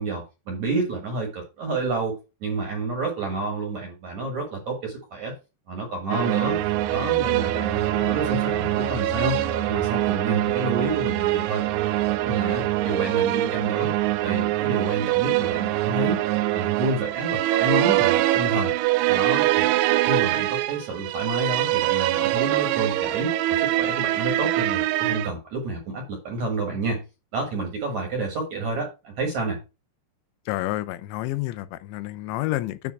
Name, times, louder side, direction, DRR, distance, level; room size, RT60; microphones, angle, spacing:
voice 1, 0.0-5.3 5.7-6.6 6.9-9.4 9.7-11.6 12.3-13.9 14.2-16.2 16.5-18.7 19.1-19.7 20.0-27.0 27.3-29.6, right 3 dB, 60° right, 2.1 m, -29 dB
sound 1, 6.0-16.8 17.1-17.3, equal, 55° left, 2.3 m, -40 dB
sound 2, 6.1-25.3, right 16 dB, 85° right, 2.9 m, -24 dB
voice 2, 30.5-32.9, left 16 dB, 85° left, 2.9 m, -29 dB
9.5 x 3.5 x 5.8 m
omnidirectional pair, 5.2 m